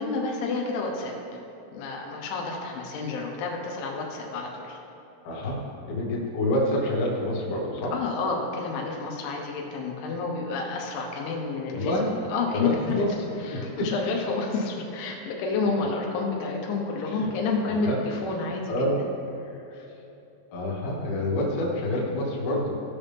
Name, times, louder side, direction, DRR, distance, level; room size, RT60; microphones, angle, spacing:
voice 1, 0.0-1.4 1.7-4.8 7.9-11.9 12.3-13.0 13.4-18.7 19.5-19.6, left 4 dB, 85° left, 0 dB, 3.4 m, -30 dB
voice 2, 5.2-7.9 11.7-12.1 12.5-13.1 13.5-13.9 17.0-17.3 17.6-18.0 18.7-19.0 19.7-19.8 20.5-22.7, left 1 dB, 65° left, -3 dB, 2.9 m, -27 dB
17.0 x 5.7 x 3.5 m, 2.8 s
omnidirectional pair, 5.4 m